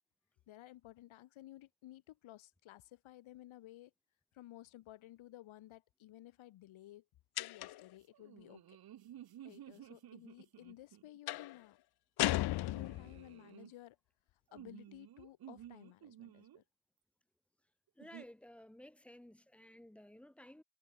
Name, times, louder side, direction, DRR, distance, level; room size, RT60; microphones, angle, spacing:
voice 1, 0.5-3.9 4.3-7.1 7.4-8.8 9.4-11.8 12.3-14.0 14.5-16.6, left 14 dB, 70° left, 6.8 m, -55 dB
sound 1, 7.4-7.9 11.3-11.6 12.2-13.3, left 16 dB, 50° left, 0.6 m, -35 dB
sound 2, 8.1-11.2 12.6-13.7 14.5-16.6 18.0-18.3, right 11 dB, 45° right, 2.3 m, -54 dB
voice 2, 18.0-20.6, left 1 dB, 5° left, 0.6 m, -55 dB
cardioid pair, 170°, 50 cm